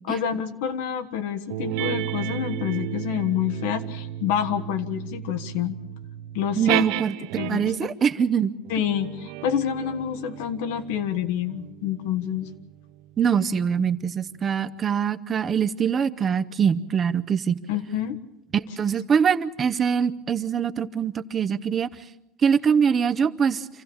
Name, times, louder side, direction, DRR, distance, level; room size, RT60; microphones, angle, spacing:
voice 1, 0.1-5.8 6.3-6.8 7.4-7.7 8.7-12.5 17.7-18.2, left 9 dB, 90° left, 9 dB, 1.5 m, -27 dB
sound 1, 1.5-7.9 8.6-13.6, right 13 dB, 75° right, 0.8 m, -33 dB
voice 2, 6.6-7.1 7.5-8.5 13.2-17.6 18.8-21.9 22.4-23.7, right 7 dB, 25° right, 11 dB, 0.7 m, -23 dB
27.0 x 15.5 x 7.1 m, 0.91 s
cardioid pair, 150°, 0 cm